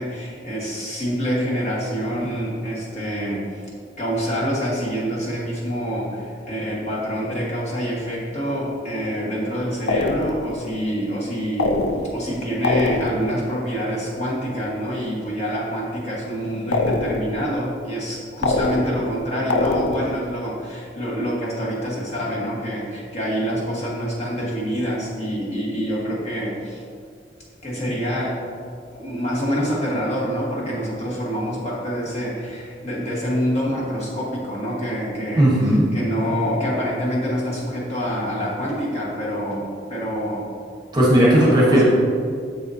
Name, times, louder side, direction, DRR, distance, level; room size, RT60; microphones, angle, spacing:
voice 1, 0.0-3.6 4.0-11.8 12.1-26.8 27.6-28.4 28.9-35.5 35.9-40.5 41.2-41.8, equal, 35° left, -5 dB, 1.4 m, -26 dB
sound 1, 9.9-10.6 11.6-12.3 12.6-13.4 16.7-17.4 18.4-19.2 19.5-20.2, left 2 dB, 60° left, 0.4 m, -23 dB
voice 2, 35.4-35.9 40.9-41.8, right 1 dB, 25° right, -4 dB, 1.1 m, -15 dB
6.8 x 6.8 x 2.7 m, 2.2 s
head